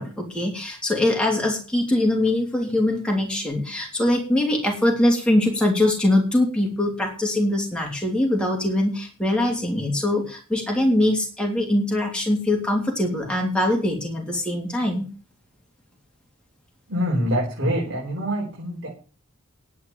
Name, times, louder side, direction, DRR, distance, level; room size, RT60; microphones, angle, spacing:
voice 1, 0.0-15.1, left 1 dB, 5° left, 0 dB, 3.2 m, -22 dB
voice 2, 16.9-18.9, equal, 50° right, -5 dB, 4.7 m, -25 dB
11.0 x 8.4 x 7.3 m, 0.37 s
head